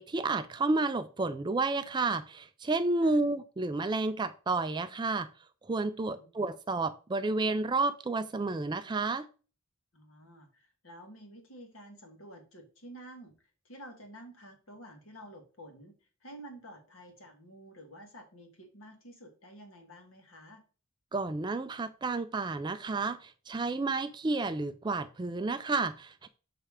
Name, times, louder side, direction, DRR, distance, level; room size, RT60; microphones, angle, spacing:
voice 1, 0.0-5.3 5.6-9.3 21.1-26.3, right 3 dB, 20° right, 0.3 m, -31 dB
voice 2, 6.0-6.3 9.9-13.3 13.6-20.6, right 1 dB, 70° left, 1.7 m, -50 dB
7.1 x 3.3 x 4.8 m
head